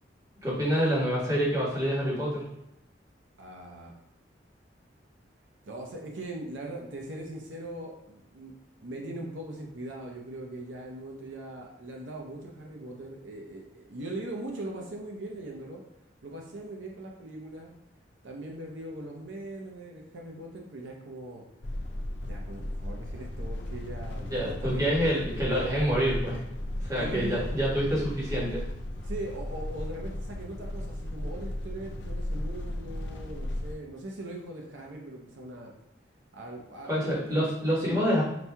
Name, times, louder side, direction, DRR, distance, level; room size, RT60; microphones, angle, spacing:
voice 1, 0.4-2.4 24.3-26.4 26.8-28.6 36.9-38.2, equal, 20° right, -8 dB, 1.4 m, -27 dB
voice 2, 3.4-3.9 5.6-8.5 8.8-15.8 16.2-17.7 18.2-21.4 22.3-25.0 27.0-27.5 29.0-35.7 36.3-37.5, right 1 dB, 80° right, 0 dB, 0.7 m, -40 dB
sound 1, 21.6-33.8, left 1 dB, 65° left, 0.5 m, -35 dB
5.9 x 2.7 x 2.3 m, 0.85 s
head